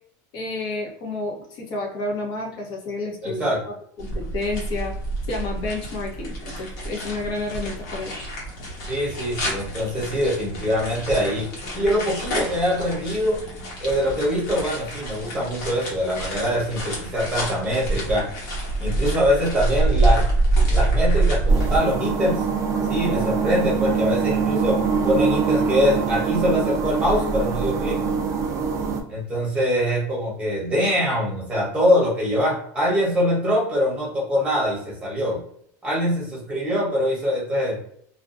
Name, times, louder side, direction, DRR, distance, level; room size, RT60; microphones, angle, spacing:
voice 1, 0.3-3.5 4.0-4.9 5.3-8.1, left 2 dB, 50° left, 0 dB, 0.8 m, -30 dB
voice 2, 3.2-3.6 8.9-11.5 11.7-13.4 13.8-18.3 18.8-20.2 20.7-22.4 22.9-28.0 29.1-35.4 35.8-37.8, equal, 10° right, -4 dB, 1.1 m, -23 dB
sound 1, 4.0-21.8, right 2 dB, 75° left, 1.1 m, -26 dB
sound 2, 21.5-29.0, right 5 dB, 35° right, 0.4 m, -24 dB
2.4 x 2.2 x 2.5 m, 0.64 s
supercardioid pair, 150°, 10 cm